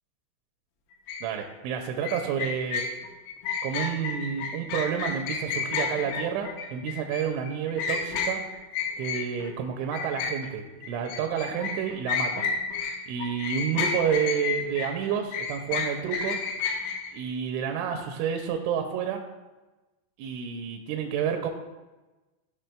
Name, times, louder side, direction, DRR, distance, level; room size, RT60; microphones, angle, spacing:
sound 1, 1.1-1.2 2.0-9.5 9.9-12.9 13.2-17.1, left 5 dB, 80° left, 3.5 m, -30 dB
voice 1, 1.2-2.8 3.6-8.4 9.0-12.5 13.1-16.4 17.1-19.2 20.2-21.5, right 8 dB, 85° right, 3 dB, 2.8 m, -30 dB
13.5 x 5.6 x 2.2 m, 1.1 s
omnidirectional pair, 5.7 m